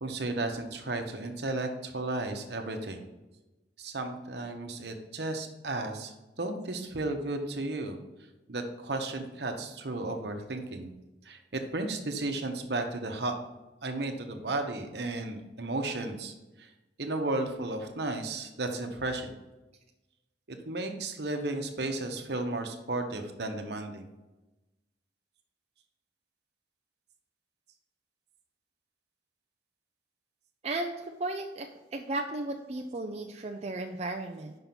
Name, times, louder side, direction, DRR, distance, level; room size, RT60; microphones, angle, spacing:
voice 1, 0.0-3.0 3.8-6.1 6.4-8.0 8.5-10.9 11.2-13.4 13.8-16.3 16.6-16.7 17.0-19.3 20.5-24.1, right 2 dB, 65° right, 5 dB, 1.0 m, -34 dB
voice 2, 30.6-34.5, right 2 dB, 35° right, 3 dB, 0.4 m, -35 dB
5.6 x 5.4 x 5.9 m, 1.0 s
head